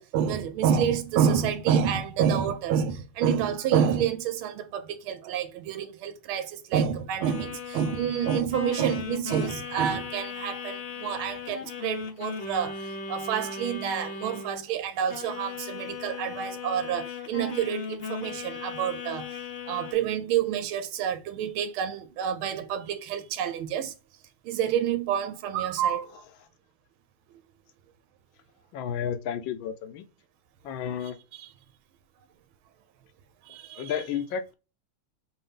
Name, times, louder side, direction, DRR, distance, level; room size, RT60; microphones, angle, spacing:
voice 1, 0.0-19.3 19.7-23.9 24.4-26.1 33.5-33.8, right 8 dB, 85° right, 1.4 m, -28 dB
sound 1, 7.2-14.7 15.1-19.9, left 5 dB, 55° left, 0.7 m, -37 dB
voice 2, 28.7-30.1 30.6-31.2 33.8-34.5, left 8 dB, 75° left, 1.3 m, -32 dB
5.3 x 2.7 x 3.4 m
omnidirectional pair, 2.3 m